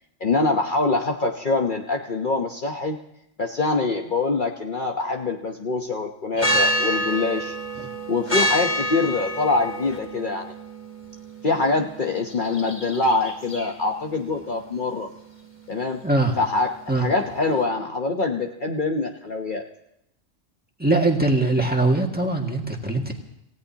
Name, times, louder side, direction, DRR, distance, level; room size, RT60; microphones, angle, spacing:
voice 1, 0.2-3.0 3.4-7.6 8.1-10.5 11.4-15.1 15.7-16.0 16.4-19.7, left 3 dB, 45° left, 2 dB, 1.1 m, -24 dB
sound 1, 6.4-17.6, equal, 25° left, 2.1 m, -29 dB
voice 2, 16.0-16.4 16.9-17.1 20.8-23.1, right 2 dB, 5° right, 1 dB, 1.9 m, -21 dB
28.0 x 16.5 x 2.9 m, 0.80 s
omnidirectional pair, 1.3 m